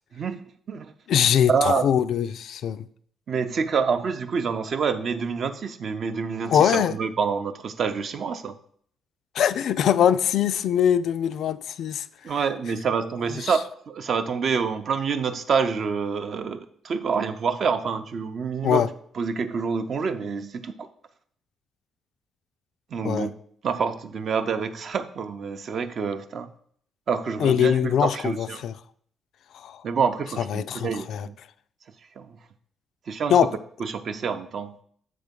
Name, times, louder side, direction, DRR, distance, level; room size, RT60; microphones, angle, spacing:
voice 1, 0.1-0.9 1.5-1.9 3.3-8.5 12.2-18.9 19.1-20.9 22.9-23.3 23.6-26.5 27.1-28.7 29.8-31.4 32.2-32.3 33.1-33.5 33.8-34.7, right 5 dB, 55° right, 0.6 m, -27 dB
voice 2, 1.1-2.9 6.5-7.0 9.4-12.1 13.4-13.5 18.6-18.9 23.0-23.3 27.4-28.7 29.5-29.8 30.5-31.3 33.3-33.5, left 9 dB, 70° left, 0.3 m, -22 dB
7.3 x 3.4 x 5.2 m
cardioid pair, 90°, 0 cm